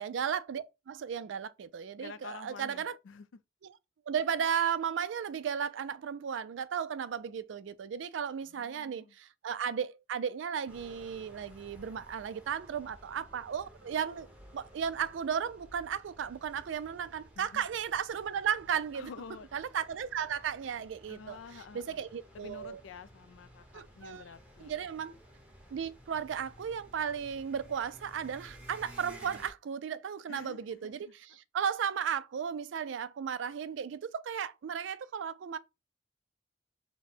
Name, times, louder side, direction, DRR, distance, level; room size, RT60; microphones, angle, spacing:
voice 1, 0.0-3.0 3.6-3.7 4.1-14.3 14.5-19.1 19.5-22.8 23.7-24.2 24.6-25.2 25.7-31.1 31.5-35.6, right 7 dB, 70° right, 0.4 m, -35 dB
voice 2, 2.0-3.3 8.4-9.1 17.4-17.6 18.9-19.5 21.1-22.0 22.3-24.9 30.3-31.1, left 5 dB, 85° left, 0.4 m, -49 dB
sound 1, 10.7-29.5, equal, 10° right, 1.0 m, -55 dB
4.1 x 2.1 x 4.4 m
head